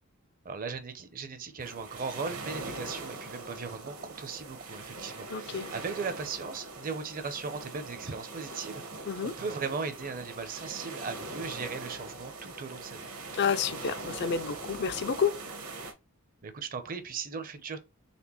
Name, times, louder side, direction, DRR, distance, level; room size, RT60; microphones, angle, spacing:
voice 1, 0.4-13.1 16.4-17.8, right 5 dB, 40° right, 0.6 m, -38 dB
sound 1, 1.6-15.9, right 3 dB, 70° right, 1.2 m, -42 dB
voice 2, 5.3-5.7 9.1-9.3 13.3-15.3, left 6 dB, 50° left, 0.4 m, -29 dB
4.2 x 3.3 x 3.0 m
head